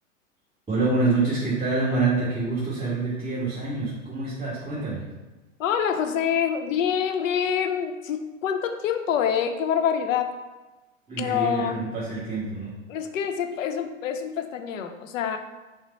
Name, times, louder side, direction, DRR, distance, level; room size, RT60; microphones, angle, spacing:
voice 1, 0.7-5.0 11.1-12.7, right 3 dB, 15° right, -11 dB, 1.5 m, -26 dB
voice 2, 5.6-10.3 11.2-11.8 12.9-15.4, left 8 dB, 75° left, 7 dB, 0.6 m, -26 dB
5.7 x 2.0 x 4.0 m, 1.2 s
hypercardioid pair, 110°, 40 cm